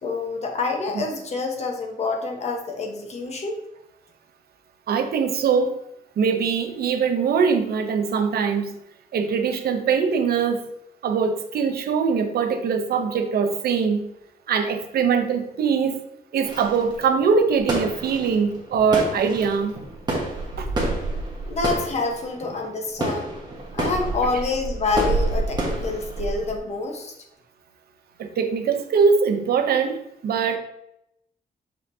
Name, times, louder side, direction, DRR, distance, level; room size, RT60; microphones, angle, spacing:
voice 1, 0.0-3.6 21.5-23.3 23.7-27.1, left 3 dB, 45° left, 3 dB, 1.0 m, -27 dB
voice 2, 4.9-5.8 6.2-8.7 9.1-10.6 11.0-14.1 14.5-16.0 16.3-19.8 20.6-20.7 28.2-30.6, right 6 dB, 85° right, 7 dB, 0.8 m, -22 dB
sound 1, 16.4-26.6, right 2 dB, 25° right, 1.4 m, -29 dB
6.6 x 5.6 x 2.7 m, 0.80 s
wide cardioid pair, 175°, 16 cm